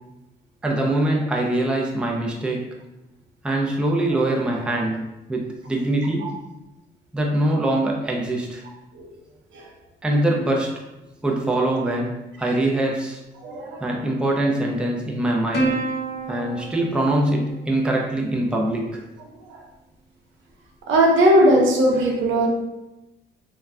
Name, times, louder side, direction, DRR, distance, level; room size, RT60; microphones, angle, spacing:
voice 1, 0.6-2.7 3.4-6.3 7.1-8.6 10.0-10.7 11.2-13.2 13.8-15.8 16.3-19.0, right 1 dB, 5° right, -1 dB, 0.4 m, -23 dB
voice 2, 13.4-13.9 19.5-19.6 20.9-22.5, right 1 dB, 75° right, 0 dB, 0.6 m, -18 dB
Plucked string instrument, 15.5-18.3, right 3 dB, 55° left, 0.9 m, -29 dB
2.2 x 2.1 x 3.4 m, 0.98 s
cardioid pair, 90°, 20 cm